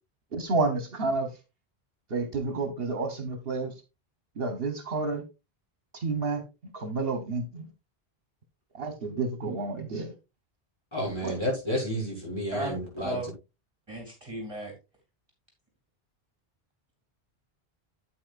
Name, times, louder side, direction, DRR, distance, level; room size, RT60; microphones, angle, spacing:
voice 1, 0.3-1.3 2.1-3.7 4.4-5.2 5.9-6.4 6.7-7.7 8.7-10.1 11.2-11.3, right 3 dB, 65° right, 7 dB, 1.3 m, -30 dB
voice 2, 10.9-13.2, equal, 25° left, -4 dB, 6.0 m, -31 dB
voice 3, 13.9-14.7, right 1 dB, 30° right, 1 dB, 2.9 m, -34 dB
8.8 x 8.6 x 2.5 m, 0.26 s
omnidirectional pair, 1.1 m